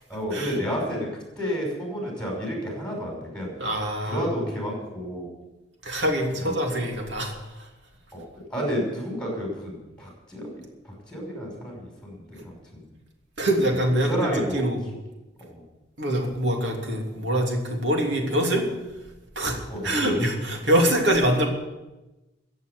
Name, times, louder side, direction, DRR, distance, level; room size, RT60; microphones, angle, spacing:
voice 1, 0.1-3.5 4.1-5.3 6.3-6.6 8.1-8.2 8.5-10.5 10.8-12.9 13.7-14.6 15.5-15.6 19.7-20.2, equal, 5° left, -1 dB, 5.6 m, -31 dB
voice 2, 3.6-4.3 5.8-7.3 13.4-14.8 16.0-18.6 19.4-19.6 19.8-21.4, right 1 dB, 70° right, 1 dB, 3.0 m, -24 dB
15.0 x 8.1 x 8.2 m, 1.1 s
head